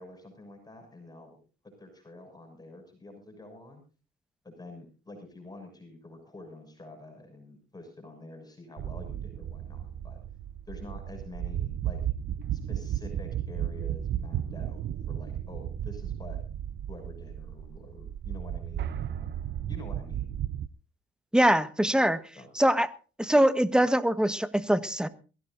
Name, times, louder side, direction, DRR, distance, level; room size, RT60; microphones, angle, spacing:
voice 1, 0.0-1.4 1.8-3.8 4.4-10.2 10.7-12.0 12.5-16.4 16.9-19.3 19.7-20.3 22.3-22.5, left 2 dB, 20° left, 4 dB, 6.6 m, -47 dB
sound 1, 8.8-20.7, right 10 dB, 60° right, 0.7 m, -34 dB
voice 2, 21.3-22.2 22.5-22.9 23.2-25.1, right 1 dB, 5° right, 12 dB, 1.4 m, -23 dB
22.0 x 15.5 x 2.6 m, 0.36 s
cardioid pair, 90°, 20 cm